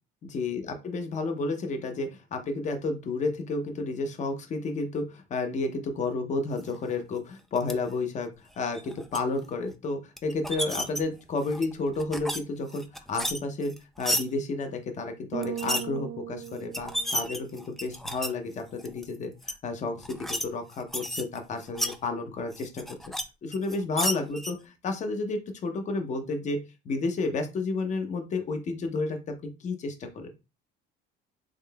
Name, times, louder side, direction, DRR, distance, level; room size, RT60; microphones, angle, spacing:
voice 1, 0.2-8.3 8.6-23.0 23.4-30.3, left 3 dB, 35° left, 5 dB, 0.7 m, -31 dB
sound 1, 7.6-7.7 8.6-9.2 10.2-11.0 11.4-12.4 12.7-14.2 15.4-15.8 16.4-16.5 16.7-18.3 18.8-19.0 19.4-19.5 20.0-20.4 20.7-22.0 22.5-23.2 23.5-24.5, equal, ahead, 0.3 m, -32 dB
Bass guitar, 15.3-17.7, right 10 dB, 65° right, 0.5 m, -37 dB
3.7 x 3.1 x 2.2 m, 0.27 s
cardioid pair, 115°, 20 cm